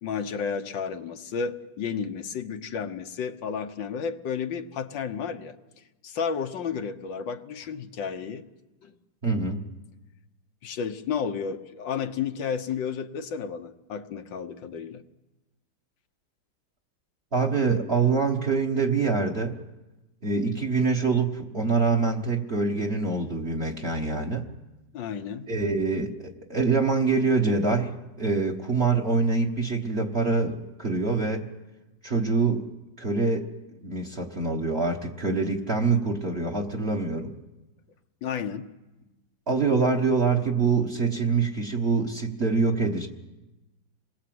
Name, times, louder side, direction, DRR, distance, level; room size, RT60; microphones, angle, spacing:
voice 1, 0.0-5.6 6.0-8.4 8.8-8.9 10.6-15.0 24.9-25.5 38.2-38.7, left 6 dB, 90° left, 7 dB, 1.8 m, -32 dB
voice 2, 9.2-9.6 17.3-19.6 20.2-24.5 25.5-31.5 32.0-32.6 33.0-33.4 33.8-37.3 39.5-43.1, right 4 dB, 35° right, 3 dB, 1.7 m, -25 dB
27.5 x 21.5 x 7.8 m, 1.1 s
omnidirectional pair, 1.9 m